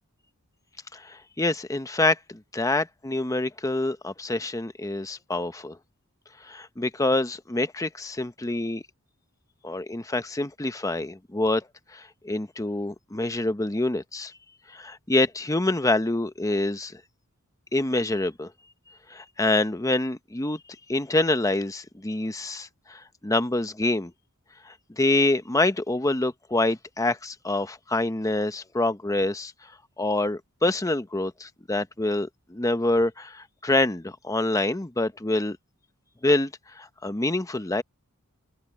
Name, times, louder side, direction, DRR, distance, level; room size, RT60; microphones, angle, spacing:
voice 1, 0.9-5.8 6.5-8.8 9.6-11.6 11.9-14.3 14.7-17.0 17.7-18.5 19.1-20.6 20.9-24.1 24.7-29.5 30.0-35.6 36.2-36.5 36.8-37.8, left 2 dB, 15° left, 0.8 m, -26 dB
open air
head